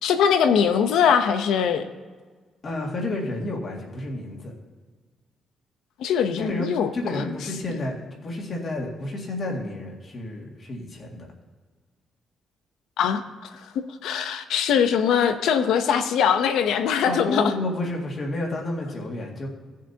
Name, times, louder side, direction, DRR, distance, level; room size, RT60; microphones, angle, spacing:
voice 1, 0.0-1.8 6.0-7.4 7.7-7.8 13.0-13.2 13.5-13.7 14.0-17.5, left 7 dB, 90° left, 9 dB, 0.8 m, -22 dB
voice 2, 2.6-4.5 6.4-11.3 17.0-19.5, left 2 dB, 35° left, 0 dB, 2.1 m, -30 dB
17.5 x 7.5 x 2.8 m, 1.4 s
cardioid pair, 165°, 0 cm